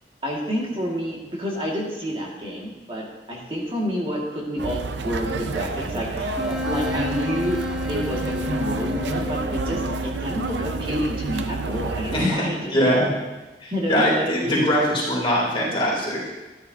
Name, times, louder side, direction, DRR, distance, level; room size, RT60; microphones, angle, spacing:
voice 1, 0.2-7.6 7.9-9.8 10.2-12.7 13.7-14.7, equal, 30° right, -3 dB, 1.9 m, -29 dB
sound 1, 4.6-12.3, right 3 dB, 80° right, 0.6 m, -29 dB
Wind instrument woodwind instrument, 6.4-12.0, left 3 dB, 5° right, 1.5 m, -32 dB
voice 2, 12.1-12.4 12.7-13.1 13.6-16.2, equal, 30° left, -5 dB, 3.1 m, -21 dB
13.5 x 10.5 x 2.8 m, 1.2 s
head